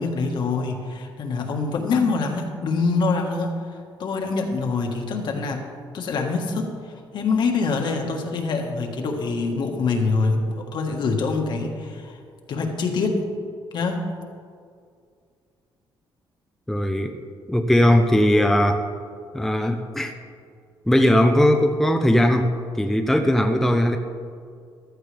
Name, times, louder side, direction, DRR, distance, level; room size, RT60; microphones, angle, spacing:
voice 1, 0.0-5.7 5.9-12.2 12.5-13.3 13.7-14.1, left 4 dB, 60° left, 2 dB, 1.7 m, -25 dB
voice 2, 16.7-17.2 17.5-18.8 19.3-20.1 20.9-24.0, left 1 dB, 5° left, 5 dB, 0.6 m, -19 dB
14.5 x 12.5 x 3.5 m, 2.2 s
cardioid pair, 140°, 9 cm